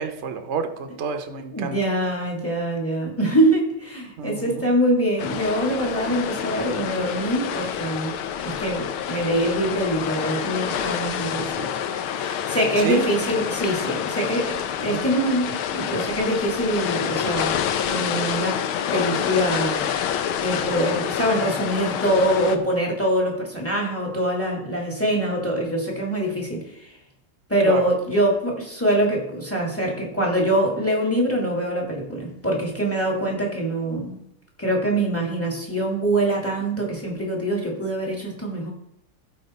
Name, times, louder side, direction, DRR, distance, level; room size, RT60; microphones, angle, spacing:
voice 1, 0.0-1.8 4.2-4.7 12.8-13.1 14.9-15.2 27.7-27.9, right 6 dB, 60° right, 7 dB, 0.7 m, -29 dB
voice 2, 1.5-8.2 8.4-11.7 12.1-17.5 17.9-18.6 18.9-19.9 20.4-26.9 27.5-34.2 34.6-38.7, right 1 dB, 5° left, 0 dB, 1.9 m, -24 dB
sound 1, 5.2-22.6, left 9 dB, 85° left, 1.6 m, -27 dB
14.0 x 5.1 x 4.3 m, 0.80 s
omnidirectional pair, 2.3 m